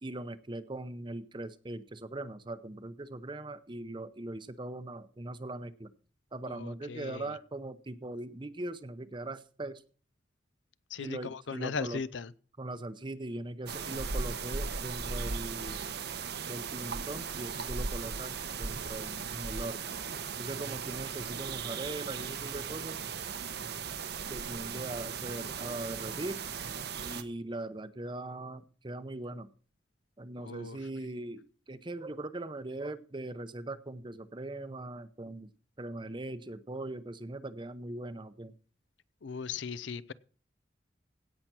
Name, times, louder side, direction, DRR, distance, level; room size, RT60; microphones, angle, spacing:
voice 1, 0.0-5.9 6.3-9.8 11.0-12.0 12.6-15.9 16.5-19.9 20.4-23.0 24.3-26.4 27.0-29.5 30.2-35.5 35.8-38.5, right 2 dB, 25° right, 0.7 m, -40 dB
voice 2, 6.5-7.4 10.9-12.3 30.4-30.8 39.2-40.1, left 5 dB, 75° left, 0.6 m, -38 dB
sound 1, 13.7-27.2, right 5 dB, 60° right, 0.9 m, -37 dB
17.0 x 5.8 x 6.1 m
head